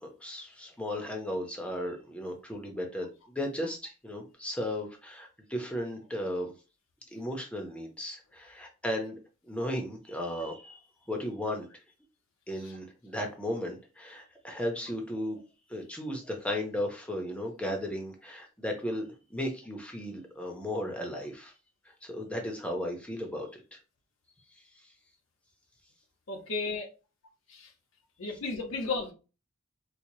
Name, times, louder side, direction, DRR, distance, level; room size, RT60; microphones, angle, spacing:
voice 1, 0.0-6.5 7.1-9.2 9.5-10.8 11.1-11.7 12.5-15.4 15.7-21.5 21.9-23.8, left 1 dB, 5° left, 0.8 m, -35 dB
voice 2, 26.3-26.9 28.2-29.1, left 3 dB, 75° left, 1.0 m, -33 dB
4.5 x 2.3 x 2.8 m
head